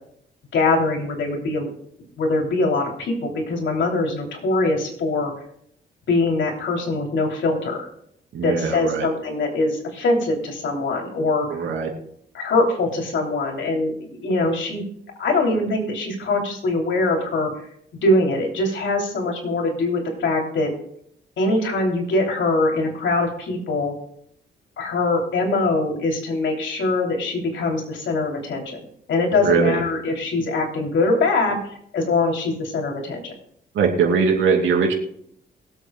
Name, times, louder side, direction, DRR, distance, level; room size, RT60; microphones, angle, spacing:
voice 1, 0.5-1.7 2.2-5.3 6.1-7.9 8.4-11.5 12.3-14.9 15.2-17.5 18.0-20.7 21.4-23.9 24.8-31.6 31.9-33.3, left 2 dB, 80° left, 1 dB, 3.1 m, -22 dB
voice 2, 8.3-9.1 11.5-11.9 29.4-29.8 33.7-34.9, right 5 dB, 90° right, 1 dB, 2.8 m, -20 dB
23.5 x 8.1 x 2.3 m, 0.69 s
cardioid pair, 110°, 19 cm